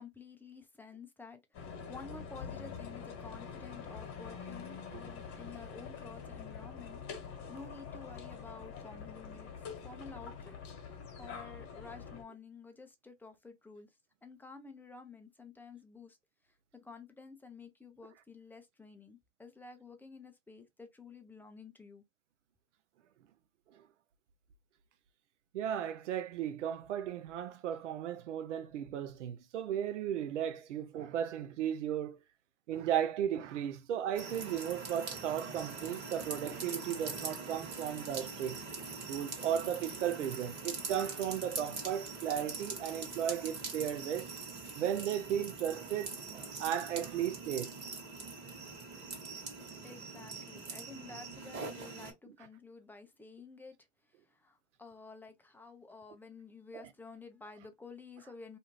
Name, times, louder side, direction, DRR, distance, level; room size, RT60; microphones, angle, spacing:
voice 1, 0.0-9.5 9.8-10.6 10.9-13.9 14.2-16.2 16.7-22.0 49.8-53.8 54.0-58.6, left 4 dB, 5° left, 0.5 m, -51 dB
sound 1, 1.5-12.2, left 6 dB, 40° left, 1.2 m, -45 dB
voice 2, 25.5-32.2 32.7-38.6 39.1-44.3 44.8-47.7, right 10 dB, 85° right, 0.5 m, -35 dB
sound 2, 34.1-52.1, right 4 dB, 30° right, 1.3 m, -43 dB
2.6 x 2.4 x 3.0 m
hypercardioid pair, 105°, 35 cm